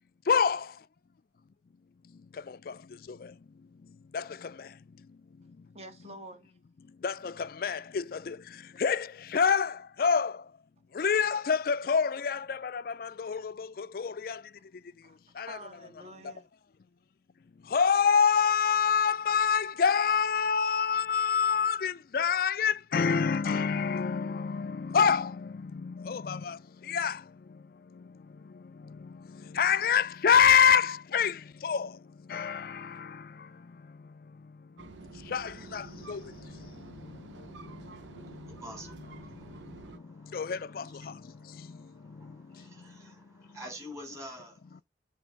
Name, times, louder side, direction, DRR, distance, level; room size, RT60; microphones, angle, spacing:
voice 1, 0.3-0.7 2.3-3.4 4.1-4.8 7.0-10.5 10.9-14.4 15.4-15.6 16.2-16.3 17.6-27.6 27.9-28.2 28.4-32.0 32.3-34.1 34.4-34.5 35.1-38.7 39.2-43.0 44.7-44.8, left 6 dB, 50° left, 0.4 m, -28 dB
voice 2, 5.7-6.5 15.0-16.4, right 1 dB, 35° right, 1.3 m, -47 dB
sound 1, 34.8-40.0, right 4 dB, 85° right, 0.7 m, -49 dB
voice 3, 35.3-44.7, equal, 15° right, 3.3 m, -50 dB
8.3 x 3.4 x 6.4 m
head